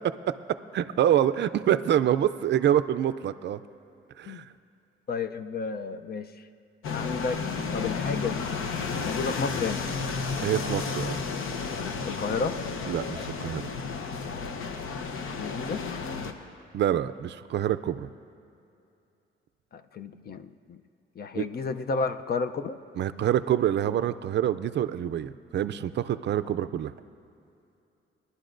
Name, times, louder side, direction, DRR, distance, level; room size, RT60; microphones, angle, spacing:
voice 1, 0.3-3.6 4.2-4.4 10.4-11.2 12.9-13.6 16.7-18.1 21.3-21.4 23.0-26.9, right 10 dB, 55° right, 12 dB, 0.4 m, -26 dB
voice 2, 5.1-6.4 6.9-7.4 7.7-8.5 9.0-9.8 12.0-12.6 15.4-15.8 19.7-20.8 21.2-22.8 26.5-26.6, left 4 dB, 45° left, 10 dB, 0.5 m, -32 dB
sound 1, 6.8-16.3, left 4 dB, 75° left, 0.9 m, -32 dB
22.0 x 11.5 x 2.6 m, 2.7 s
cardioid pair, 100°, 21 cm